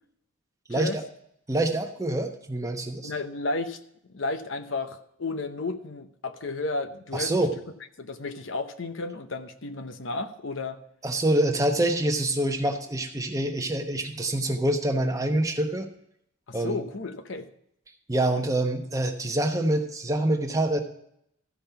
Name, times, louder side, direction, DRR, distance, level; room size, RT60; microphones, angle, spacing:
voice 1, 0.7-1.0 1.5-3.1 7.1-7.5 11.0-15.9 16.5-16.8 18.1-20.8, right 1 dB, 15° right, 4 dB, 1.0 m, -26 dB
voice 2, 3.0-3.8 4.1-7.3 8.0-10.8 16.5-17.5, left 3 dB, 65° left, 9 dB, 0.8 m, -32 dB
14.0 x 5.3 x 5.7 m, 0.73 s
head